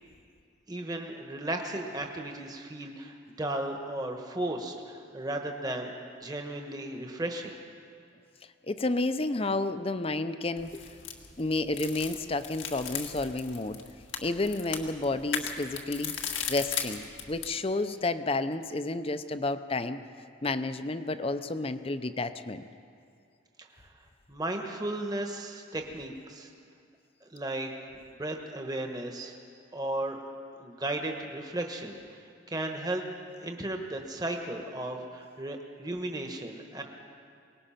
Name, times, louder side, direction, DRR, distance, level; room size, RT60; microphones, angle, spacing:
voice 1, 0.7-5.9 6.2-7.6 23.6-23.7 24.3-26.5 27.2-29.4 29.7-30.2 30.6-33.1 33.4-36.8, right 1 dB, 20° right, 3 dB, 1.2 m, -35 dB
voice 2, 8.7-10.8 11.4-13.8 14.2-16.2 16.5-20.0 20.4-22.7, left 2 dB, 30° left, 11 dB, 0.6 m, -31 dB
sound 1, 10.6-17.6, left 7 dB, 90° left, 1.8 m, -37 dB
23.5 x 19.5 x 5.8 m, 2.4 s
head